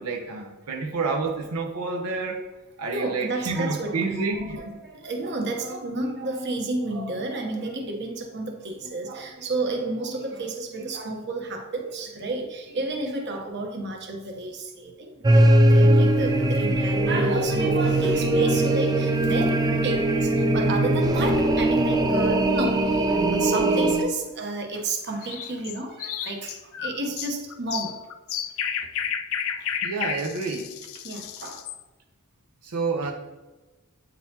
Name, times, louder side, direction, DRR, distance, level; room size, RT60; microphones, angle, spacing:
voice 1, 0.0-2.4 2.8-4.8 29.8-30.8 32.6-33.1, right 3 dB, 90° right, 1 dB, 0.8 m, -29 dB
voice 2, 2.8-4.1 4.3-28.0 29.5-29.7 31.0-31.6, right 2 dB, 50° right, 2 dB, 1.0 m, -31 dB
sound 1, 15.2-24.0, right 1 dB, 15° right, 0.3 m, -20 dB
sound 2, 25.2-31.8, left 8 dB, 65° left, 0.4 m, -32 dB
8.7 x 3.9 x 2.8 m, 1.2 s
head